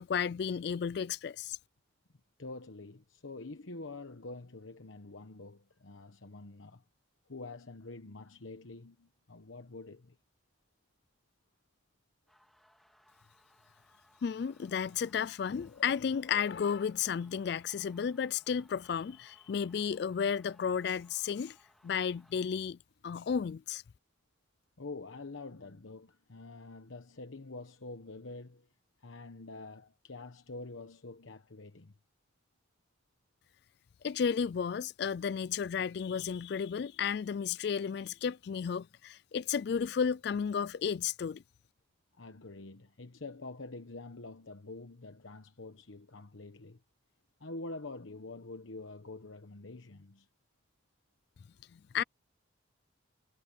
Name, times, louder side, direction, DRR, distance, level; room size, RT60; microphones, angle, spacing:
voice 1, 0.0-1.6 14.2-21.6 21.8-22.8 23.0-23.8 34.0-41.4 51.9-52.0, left 7 dB, 55° left, 0.3 m, -33 dB
voice 2, 2.4-6.8 7.3-10.2 24.8-28.7 29.0-31.9 42.1-46.8 47.4-50.3, left 3 dB, 80° left, 1.1 m, -46 dB
sound 1, 12.3-22.3, equal, ahead, 3.7 m, -67 dB
head